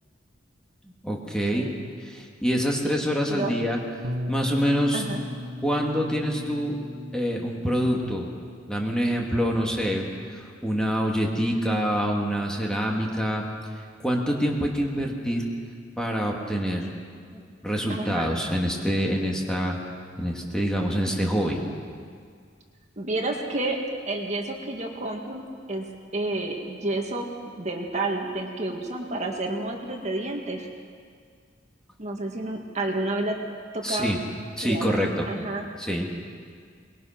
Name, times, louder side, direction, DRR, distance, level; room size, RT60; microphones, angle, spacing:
voice 1, 1.0-1.7 2.0-3.8 4.3-5.0 5.6-6.8 7.1-8.3 8.7-13.4 14.0-15.4 16.0-16.9 17.3-19.8 20.2-21.6 33.8-34.2 34.6-35.3 35.8-36.1, equal, 5° left, -1 dB, 2.2 m, -26 dB
Bass guitar, 4.0-10.3, equal, 90° right, 1.1 m, -37 dB
voice 2, 4.9-5.2 17.9-18.3 23.0-23.8 24.1-25.9 26.1-30.7 32.0-33.4 33.7-34.2 34.6-35.7, right 2 dB, 40° right, 1 dB, 1.9 m, -30 dB
24.0 x 20.5 x 6.0 m, 2.1 s
head